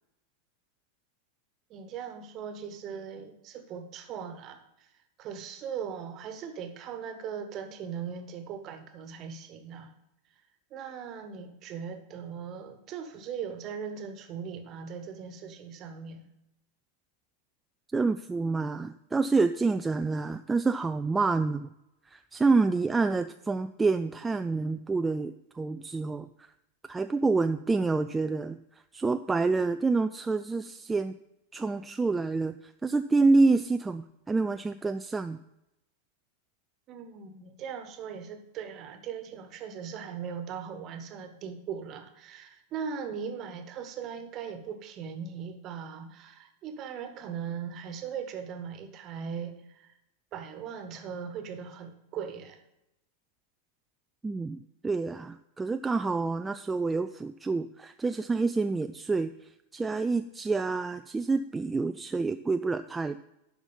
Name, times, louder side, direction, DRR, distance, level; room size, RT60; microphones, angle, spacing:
voice 1, 1.7-4.9 5.2-9.9 10.7-16.3 36.9-49.9 50.3-52.6, right 7 dB, 35° right, 8 dB, 1.2 m, -39 dB
voice 2, 17.9-21.7 22.1-26.5 26.9-28.6 28.9-31.1 31.5-35.4 54.2-59.3 59.7-63.2, right 3 dB, 10° right, 8 dB, 0.3 m, -27 dB
11.0 x 5.8 x 5.5 m, 0.87 s
figure-of-eight pair, 90°, 0 cm